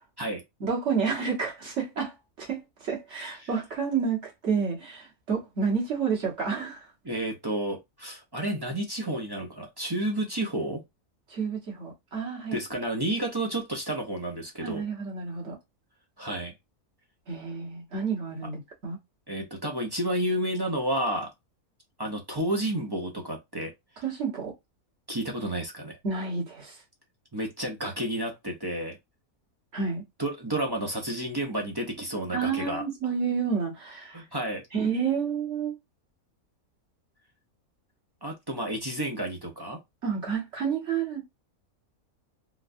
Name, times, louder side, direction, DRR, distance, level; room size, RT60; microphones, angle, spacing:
voice 1, 0.6-6.9 11.3-12.6 14.6-15.6 17.3-19.0 24.0-24.5 26.0-26.8 29.7-30.0 32.3-34.2 34.7-35.7 40.0-41.2, right 5 dB, 55° right, 1.5 m, -30 dB
voice 2, 7.0-10.8 12.5-14.8 16.2-16.5 19.3-21.3 22.0-23.7 25.1-26.0 27.3-29.0 30.2-32.8 34.1-34.6 38.2-39.8, right 1 dB, 30° right, 0.4 m, -31 dB
3.9 x 2.3 x 2.6 m
omnidirectional pair, 1.5 m